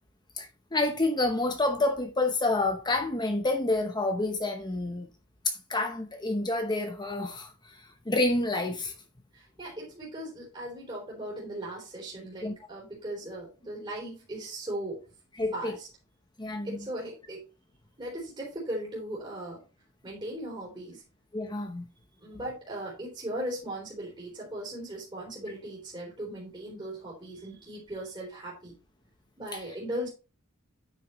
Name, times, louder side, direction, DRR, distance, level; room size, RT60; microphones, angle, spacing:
voice 1, 0.4-5.1 5.4-8.9 12.4-12.5 15.4-15.7 16.4-16.9 21.3-21.8 29.5-29.6, left 2 dB, 20° left, 0.8 m, -28 dB
voice 2, 9.3-15.0 15.5-15.9 16.6-17.4 18.0-19.6 20.0-21.0 22.2-28.7 29.4-30.1, right 1 dB, 20° right, 3.2 m, -38 dB
9.1 x 6.3 x 3.1 m
head